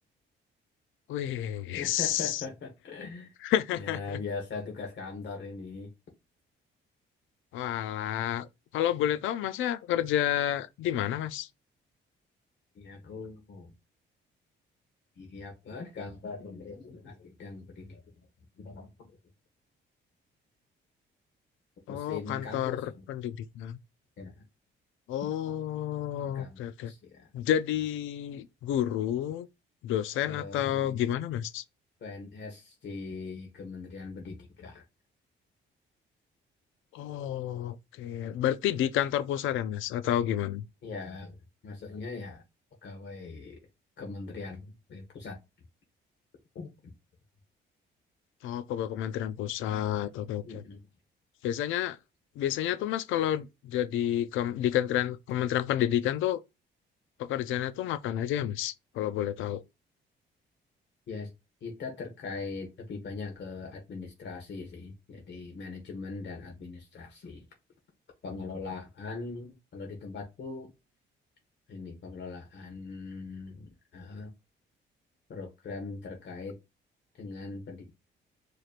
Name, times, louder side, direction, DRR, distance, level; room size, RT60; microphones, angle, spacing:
voice 1, 1.1-2.4 3.4-4.2 7.5-8.5 8.7-11.5 21.9-23.8 25.1-26.9 27.3-29.5 29.8-31.6 36.9-40.6 48.4-50.6 51.4-52.0 52.4-56.4 57.2-59.6, left 11 dB, 80° left, 0.4 m, -30 dB
voice 2, 1.7-3.3 3.7-5.9 12.7-13.7 15.2-18.0 18.6-19.1 21.9-23.0 24.2-24.4 25.5-25.6 26.2-27.3 30.2-31.1 32.0-34.8 40.8-41.4 41.6-42.4 42.8-43.6 44.0-45.4 46.5-46.7 50.4-50.8 61.1-61.3 61.6-67.4 68.2-70.7 71.7-74.3 75.3-76.6 77.1-77.9, left 4 dB, 60° left, 1.4 m, -41 dB
4.7 x 2.9 x 2.4 m
cardioid pair, 90°, 20 cm